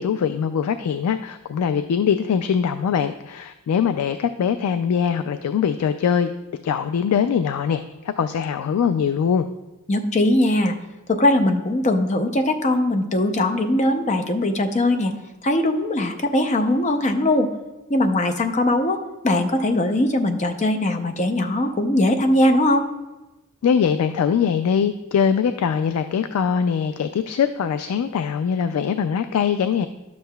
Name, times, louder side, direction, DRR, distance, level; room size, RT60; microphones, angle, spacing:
voice 1, 0.0-6.3 6.6-9.5 23.6-29.9, left 7 dB, 85° left, 10 dB, 0.3 m, -22 dB
voice 2, 9.9-10.7 11.1-15.1 15.4-17.5 17.9-19.0 19.2-22.9, left 1 dB, 35° left, 6 dB, 0.6 m, -20 dB
11.5 x 7.4 x 2.3 m, 1.1 s
head